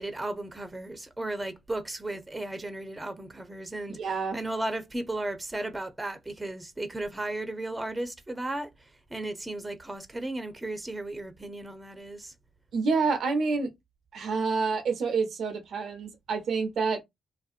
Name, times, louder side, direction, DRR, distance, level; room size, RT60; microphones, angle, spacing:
voice 1, 0.0-8.7 9.1-12.3, right 1 dB, 15° right, 0.7 m, -35 dB
voice 2, 3.9-4.4 12.7-13.7 14.1-17.0, right 4 dB, 65° right, 0.6 m, -28 dB
2.5 x 2.1 x 2.5 m
hypercardioid pair, 45°, 0 cm